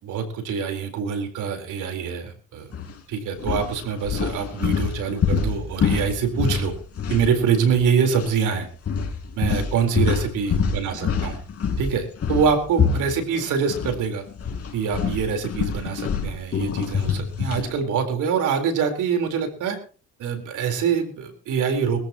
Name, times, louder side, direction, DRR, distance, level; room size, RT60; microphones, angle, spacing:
voice 1, 0.0-2.7 3.1-6.7 7.1-8.7 9.4-11.4 11.8-14.2 14.7-19.8 20.2-22.0, right 6 dB, 85° right, 5 dB, 4.1 m, -24 dB
sound 1, 2.7-2.9 3.4-7.9 8.1-8.3 8.9-14.0 14.3-17.7, left 6 dB, 50° left, 4.2 m, -26 dB
22.5 x 14.0 x 3.0 m, 0.38 s
cardioid pair, 90°, 30 cm